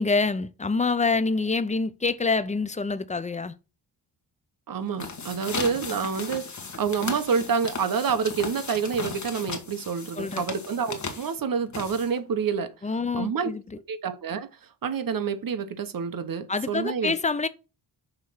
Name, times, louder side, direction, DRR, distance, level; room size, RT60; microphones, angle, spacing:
voice 1, 0.0-3.5 10.2-10.4 12.8-13.8 16.5-17.5, left 4 dB, 20° left, 0.4 m, -26 dB
voice 2, 4.7-12.7 13.2-13.5 13.9-14.5 14.8-17.1, right 6 dB, 50° right, 0.9 m, -28 dB
sound 1, 4.8-12.4, left 4 dB, 40° left, 1.4 m, -36 dB
6.4 x 3.1 x 5.6 m
cardioid pair, 100°, 44 cm